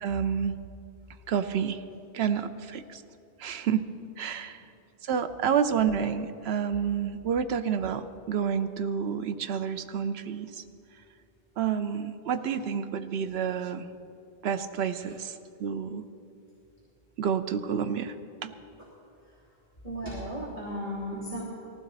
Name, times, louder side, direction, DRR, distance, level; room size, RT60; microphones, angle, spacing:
voice 1, 0.0-0.5 1.3-1.8 2.1-3.0 3.4-3.9 4.2-4.6 5.1-10.5 11.6-13.9 14.4-15.3 15.6-16.0 17.2-18.1 18.4-18.5, right 7 dB, 85° right, 9 dB, 0.9 m, -29 dB
voice 2, 19.8-21.4, equal, 35° left, -5 dB, 2.5 m, -35 dB
18.5 x 15.5 x 4.0 m, 2.6 s
omnidirectional pair, 1.0 m